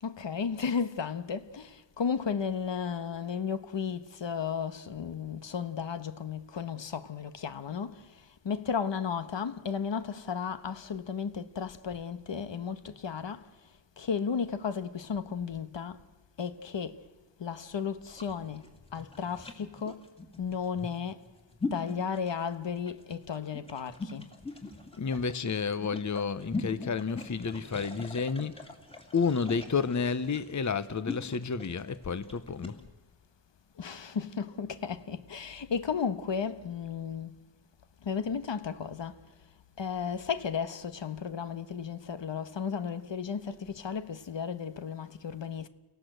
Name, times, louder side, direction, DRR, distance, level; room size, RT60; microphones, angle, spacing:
voice 1, 0.0-13.5 14.0-16.0 16.4-17.0 17.4-18.6 18.9-20.1 20.4-21.2 21.7-24.3 33.8-37.3 38.0-39.2 39.8-45.7, left 6 dB, 75° left, 1.3 m, -34 dB
sound 1, 18.0-32.8, left 3 dB, 15° left, 2.8 m, -41 dB
voice 2, 25.0-28.7 29.1-32.8, left 5 dB, 40° left, 0.9 m, -31 dB
29.5 x 18.0 x 8.0 m
wide cardioid pair, 115°, 44 cm